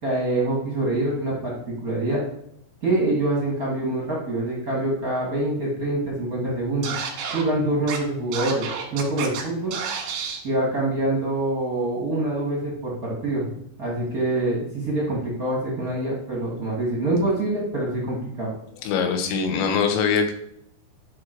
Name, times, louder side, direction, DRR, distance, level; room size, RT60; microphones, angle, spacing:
voice 1, 0.0-1.6 1.8-2.2 2.8-6.9 7.3-9.7 10.4-18.5, right 2 dB, 55° right, -3 dB, 1.0 m, -25 dB
Scratching (performance technique), 6.8-7.4 7.9-8.0 8.3-9.4 9.7-10.4, right 7 dB, 90° right, 3.8 m, -30 dB
voice 2, 18.8-20.3, left 6 dB, 85° left, 6 dB, 3.5 m, -22 dB
12.0 x 4.9 x 4.6 m, 0.73 s
omnidirectional pair, 5.1 m